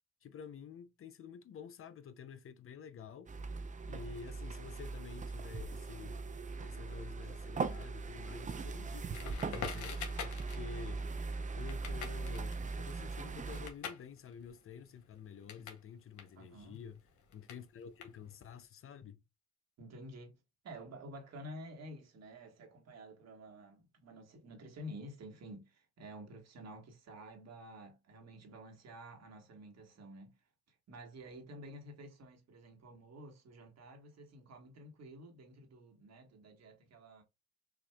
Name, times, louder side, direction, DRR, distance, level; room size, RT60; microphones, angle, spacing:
voice 1, 0.2-3.3 3.8-6.2 6.6-11.0 11.5-17.0 17.3-19.2, left 7 dB, 45° left, 0.5 m, -50 dB
sound 1, 3.3-13.7, right 4 dB, 25° right, 0.5 m, -40 dB
Crackle, 9.1-15.8 16.1-18.6, left 6 dB, 70° left, 1.2 m, -46 dB
voice 2, 16.4-16.8 19.8-30.4 30.9-37.2, equal, 60° right, 1.5 m, -51 dB
6.0 x 2.5 x 2.2 m
cardioid pair, 90°, 30 cm